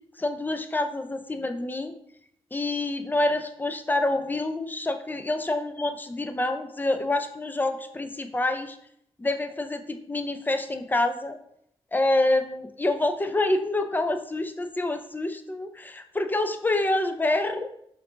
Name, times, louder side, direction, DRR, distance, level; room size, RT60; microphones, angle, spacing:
voice 1, 0.2-1.9 2.5-8.8 9.2-11.4 11.9-17.7, left 2 dB, 15° left, 8 dB, 0.5 m, -27 dB
5.7 x 2.6 x 2.8 m, 0.73 s
cardioid pair, 60°, 11 cm